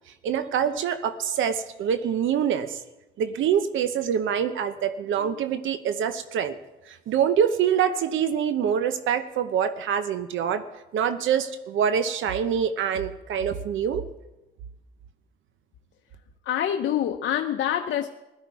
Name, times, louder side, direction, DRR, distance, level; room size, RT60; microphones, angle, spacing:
voice 1, 0.2-2.8 3.2-6.6 6.9-10.7 10.9-14.0, right 8 dB, 80° right, 11 dB, 0.8 m, -25 dB
voice 2, 16.5-18.1, left 10 dB, 70° left, 5 dB, 0.7 m, -26 dB
16.5 x 12.5 x 4.7 m, 1.0 s
cardioid pair, 90°, 20 cm